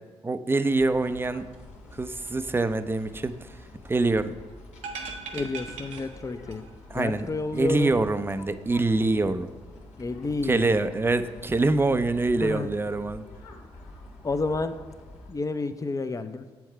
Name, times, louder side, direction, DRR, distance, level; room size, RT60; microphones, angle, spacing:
voice 1, 0.2-1.5 1.9-3.4 3.8-4.3 6.9-9.5 10.4-13.2, right 2 dB, 20° right, 11 dB, 0.5 m, -25 dB
sound 1, 0.8-15.3, left 2 dB, 75° left, 1.2 m, -47 dB
sound 2, 4.8-6.7 7.0-7.1, right 4 dB, 75° right, 0.7 m, -39 dB
voice 2, 5.3-6.7 6.9-8.0 9.2-9.3 10.0-11.0 12.4-12.7 14.2-14.7 15.3-16.5, left 3 dB, 30° left, 10 dB, 0.6 m, -30 dB
7.2 x 4.7 x 4.5 m, 1.4 s
supercardioid pair, 50°, 12 cm